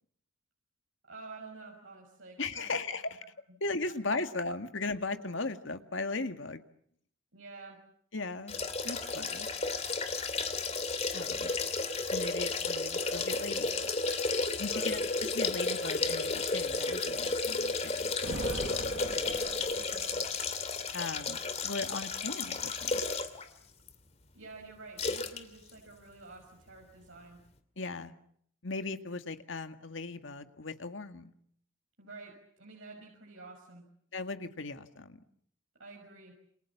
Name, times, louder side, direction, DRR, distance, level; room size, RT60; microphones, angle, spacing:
voice 1, 1.1-2.7 3.1-3.3 7.3-7.8 14.6-15.0 18.3-20.5 24.3-27.4 32.0-32.3 32.6-33.8 35.8-36.3, right 3 dB, 80° right, 0 dB, 6.1 m, -49 dB
voice 2, 2.4-3.2 3.6-6.6 8.1-8.6 8.8-9.5 11.1-11.5 12.1-13.9 14.6-15.0 15.3-18.1 20.9-23.0 27.8-28.1 28.6-31.3 34.1-35.2, left 3 dB, 70° left, 8 dB, 1.9 m, -37 dB
sound 1, 8.5-23.4 23.9-24.0 25.0-25.4 25.7-25.8, left 3 dB, 30° left, 2.6 m, -33 dB
Thunder, 18.2-20.4, right 2 dB, 55° right, 1.4 m, -41 dB
28.5 x 27.5 x 7.3 m, 0.68 s
head